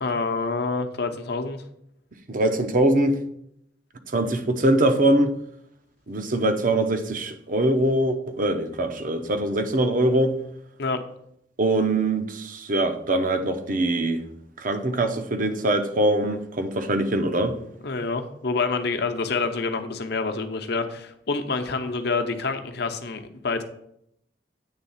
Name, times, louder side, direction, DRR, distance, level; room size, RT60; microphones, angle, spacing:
voice 1, 0.0-1.6 10.8-11.0 17.8-23.6, left 4 dB, 65° left, 0.8 m, -27 dB
voice 2, 2.3-3.2 4.1-5.3 6.1-10.3 11.6-14.2 14.6-17.6, right 1 dB, 50° right, 0.8 m, -23 dB
8.9 x 3.5 x 5.6 m
head